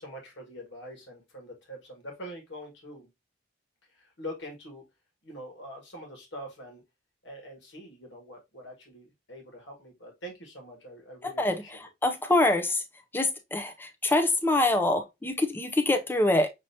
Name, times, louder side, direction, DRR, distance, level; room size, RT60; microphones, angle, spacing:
voice 1, 0.0-3.1 3.9-4.8 5.2-6.8 7.2-11.7, equal, 65° left, 1.7 m, -44 dB
voice 2, 11.2-12.8 13.1-16.5, left 2 dB, 10° left, 0.5 m, -25 dB
6.2 x 2.9 x 2.7 m
head